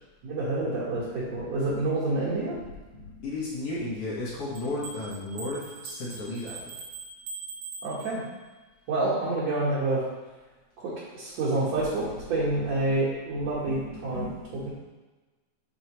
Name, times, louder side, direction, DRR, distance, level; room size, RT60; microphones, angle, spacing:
voice 1, 0.2-2.5 7.8-8.2 8.9-10.0 10.8-14.3, right 2 dB, 55° right, -9 dB, 2.5 m, -28 dB
voice 2, 2.6-6.8 11.8-11.9 12.6-13.0 13.3-14.7, left 2 dB, 50° left, -7 dB, 2.2 m, -35 dB
sound 1, 4.5-8.5, right 4 dB, 90° right, 1.5 m, -42 dB
10.0 x 4.5 x 3.2 m, 1.2 s
omnidirectional pair, 4.0 m